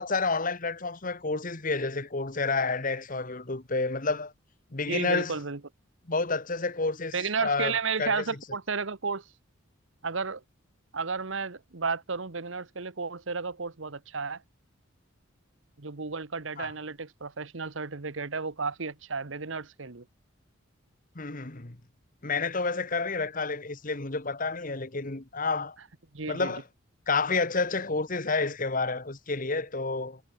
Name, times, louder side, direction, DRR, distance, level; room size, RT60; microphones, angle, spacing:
voice 1, 0.0-4.3 4.7-5.3 6.1-7.1 7.4-8.2 16.6-16.7 21.1-21.8 22.2-25.8 26.3-26.6 27.1-30.2, left 3 dB, 40° left, 1.5 m, -29 dB
voice 2, 4.9-5.6 7.1-9.2 10.0-10.4 10.9-14.4 15.8-20.0 26.1-26.5, right 4 dB, 70° right, 1.2 m, -32 dB
head